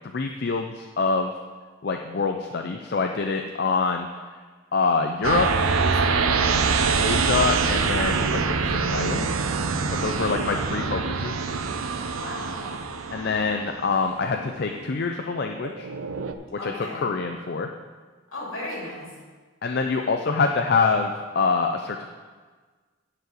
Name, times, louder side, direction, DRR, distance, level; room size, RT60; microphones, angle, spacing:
voice 1, 0.1-1.3 1.8-4.1 4.7-5.5 7.0-9.5 9.9-11.5 13.1-15.9 16.6-16.7 17.0-17.7 19.6-22.0, left 4 dB, 50° left, 4 dB, 0.5 m, -25 dB
sound 1, 5.2-14.8 15.4-16.3, right 4 dB, 80° right, 0.6 m, -25 dB
voice 2, 5.4-6.8 10.0-10.6 12.1-12.8 16.6-17.1 18.3-19.2, left 1 dB, 70° left, -3 dB, 3.0 m, -37 dB
9.6 x 4.8 x 7.6 m, 1.4 s
head